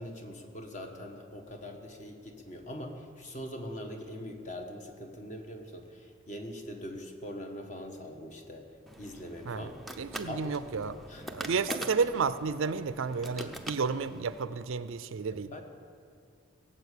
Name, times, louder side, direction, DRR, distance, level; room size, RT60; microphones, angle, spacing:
voice 1, 0.0-9.8 10.3-10.6 11.1-11.8 13.4-13.6 15.3-15.6, left 1 dB, 35° left, 4 dB, 1.3 m, -42 dB
sound 1, 8.9-14.4, right 1 dB, ahead, 0.6 m, -43 dB
voice 2, 10.0-10.9 11.3-15.5, right 5 dB, 65° right, 14 dB, 0.5 m, -31 dB
17.5 x 7.5 x 8.3 m, 2.4 s
head